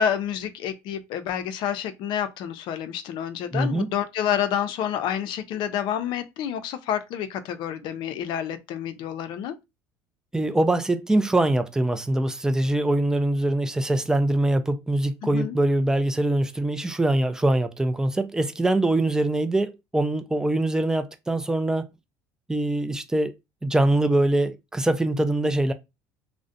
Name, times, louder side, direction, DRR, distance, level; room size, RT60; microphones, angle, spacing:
voice 1, 0.0-9.6 15.2-15.6, left 9 dB, 65° left, 0.4 m, -28 dB
voice 2, 3.5-3.9 10.3-21.9 22.5-23.3 23.6-25.7, right 1 dB, 5° right, 0.4 m, -23 dB
2.5 x 2.0 x 2.5 m
supercardioid pair, 100°, 9 cm